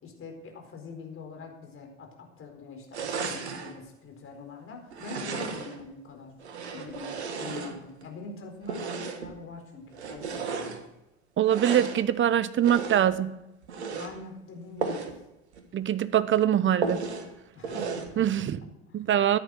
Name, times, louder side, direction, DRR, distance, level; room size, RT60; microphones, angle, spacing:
voice 1, 0.0-6.4 6.7-10.8 13.9-15.0 17.5-19.0, left 4 dB, 40° left, 4.4 m, -44 dB
sound 1, 2.9-3.7 4.9-5.8 6.4-8.1 8.6-9.4 9.9-10.8 11.4-12.0 12.6-13.2 13.6-14.1 14.8-15.2 15.5-15.6 16.0-16.1 16.8-17.3 17.6-18.1, right 5 dB, 80° right, 1.6 m, -34 dB
voice 2, 11.4-13.4 15.7-17.0 18.2-18.6 18.9-19.4, right 10 dB, 35° right, 1.0 m, -23 dB
14.0 x 10.5 x 6.3 m
figure-of-eight pair, 60°, 33 cm